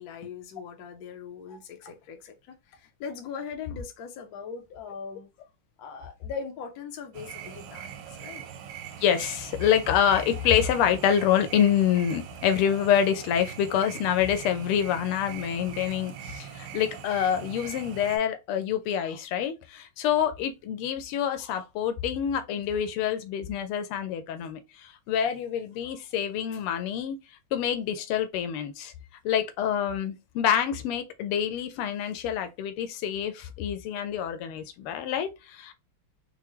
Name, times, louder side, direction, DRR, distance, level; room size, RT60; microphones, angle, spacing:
voice 1, 0.0-2.4 2.7-5.3 5.8-8.4, left 6 dB, 65° left, 0.9 m, -40 dB
sound 1, 7.1-18.2, right 8 dB, 75° right, 1.1 m, -41 dB
voice 2, 9.0-24.6 25.1-27.2 27.5-28.9 29.2-35.7, left 9 dB, 90° left, 1.5 m, -26 dB
4.5 x 2.0 x 3.0 m
omnidirectional pair, 2.4 m